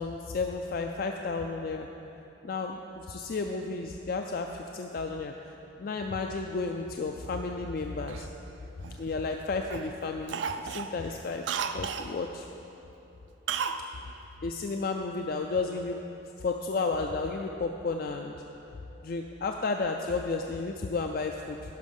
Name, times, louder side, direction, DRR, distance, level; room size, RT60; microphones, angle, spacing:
voice 1, 0.0-1.9 2.5-2.8 3.1-4.5 4.7-5.3 5.8-8.2 9.0-10.4 10.7-11.4 11.7-12.4 14.4-16.0 16.4-18.4 19.0-21.6, left 4 dB, 50° left, 3 dB, 0.3 m, -32 dB
Cough, 8.1-9.3 9.7-9.9 10.3-12.1 13.5-13.8 14.1-14.2, right 7 dB, 65° right, 0.4 m, -34 dB
11.5 x 5.7 x 5.3 m, 2.9 s
head